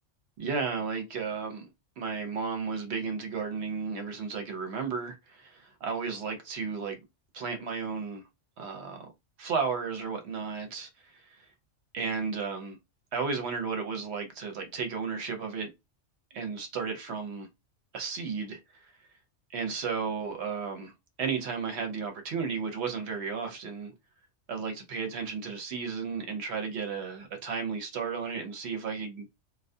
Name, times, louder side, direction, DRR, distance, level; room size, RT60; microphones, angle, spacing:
voice 1, 0.4-1.7 2.0-7.0 7.3-8.2 8.6-9.1 9.4-11.4 11.9-12.8 13.1-15.7 16.3-17.5 17.9-18.9 19.5-20.9 21.2-23.9 24.5-29.3, right 5 dB, 65° right, 0.8 m, -33 dB
2.3 x 2.2 x 2.6 m
omnidirectional pair, 1.3 m